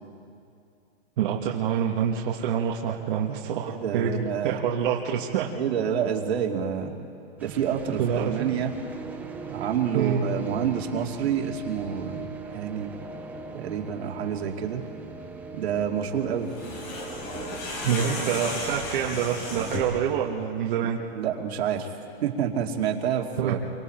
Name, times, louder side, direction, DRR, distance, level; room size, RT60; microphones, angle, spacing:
voice 1, 1.2-5.5 8.0-8.5 9.9-10.2 17.8-21.0 23.4-23.7, right 8 dB, 50° right, -1 dB, 1.6 m, -27 dB
voice 2, 3.8-4.6 5.5-6.9 7.4-8.7 9.5-12.9 13.5-14.8 15.5-16.5 17.9-18.4 21.1-21.9 22.2-23.6, right 8 dB, 75° right, 2 dB, 2.3 m, -28 dB
sound 1, 7.4-19.6, right 4 dB, 5° right, 0.5 m, -41 dB
sound 2, 16.4-20.0, left 2 dB, 40° left, 4.4 m, -34 dB
28.0 x 24.5 x 4.5 m, 2.5 s
supercardioid pair, 165°, 32 cm